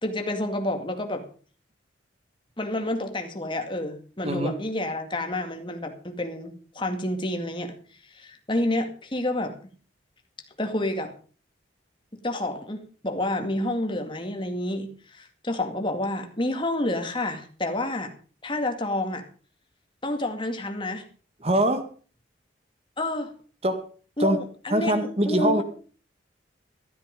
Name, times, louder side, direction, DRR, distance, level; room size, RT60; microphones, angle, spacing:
voice 1, 0.0-1.2 2.6-7.8 8.1-9.5 10.6-11.1 12.2-18.1 18.4-19.2 20.0-21.0 23.0-23.3 24.2-25.6, left 1 dB, 25° left, 5 dB, 2.1 m, -29 dB
voice 2, 21.4-21.9 23.6-23.9 24.2-24.4 24.7-25.6, right 1 dB, 30° right, 8 dB, 2.0 m, -23 dB
13.0 x 12.5 x 5.3 m, 0.40 s
head